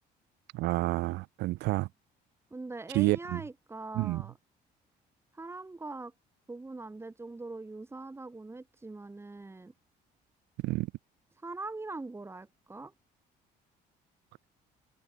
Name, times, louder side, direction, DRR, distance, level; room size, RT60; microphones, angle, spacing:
voice 1, 0.5-1.9 2.9-3.4 3.9-4.2 10.6-10.9, right 20 dB, 90° right, 3.2 m, -29 dB
voice 2, 2.5-4.3 5.3-6.1 6.5-9.7 11.4-12.9, right 3 dB, 15° right, 2.8 m, -42 dB
cardioid pair, 110°, 17 cm